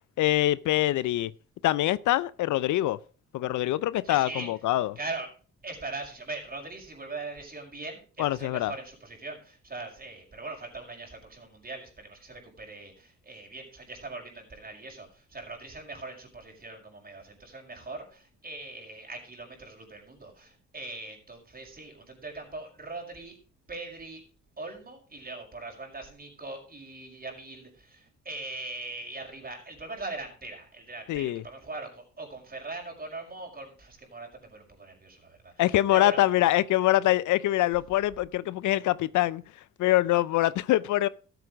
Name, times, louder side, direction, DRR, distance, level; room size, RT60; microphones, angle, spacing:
voice 1, 0.2-1.3 1.6-3.0 3.3-5.0 8.2-8.7 31.1-31.4 35.6-39.4 39.8-41.1, left 15 dB, 75° left, 0.6 m, -24 dB
voice 2, 4.0-4.5 5.0-5.3 5.6-23.4 23.7-24.2 24.6-36.2, right 3 dB, 30° right, 5.5 m, -41 dB
13.5 x 8.1 x 5.1 m
cardioid pair, 90°, 30 cm